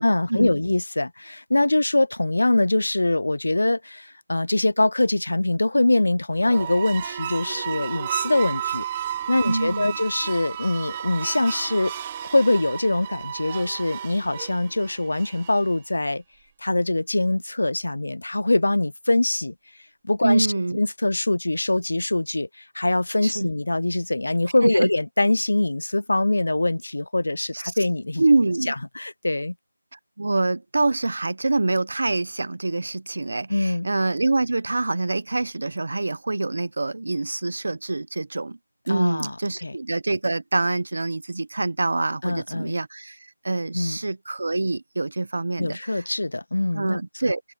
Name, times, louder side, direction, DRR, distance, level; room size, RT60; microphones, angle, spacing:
voice 1, 0.0-8.9 9.3-11.9 12.2-16.2 16.6-19.5 20.0-20.5 20.7-22.5 22.7-28.2 28.7-29.5 33.5-33.9 38.9-39.3 39.6-39.8 42.2-42.8 43.7-44.0 45.6-47.0, left 2 dB, 80° left, 0.4 m, -23 dB
sound 1, 6.3-15.7, right 10 dB, 10° right, 1.0 m, -33 dB
voice 2, 9.4-10.0 20.2-20.8 23.2-23.5 24.6-24.9 27.5-27.7 28.2-28.7 29.9-38.6 38.9-46.0 46.7-47.4, right 2 dB, 50° right, 0.8 m, -25 dB
figure-of-eight pair, 180°, 0 cm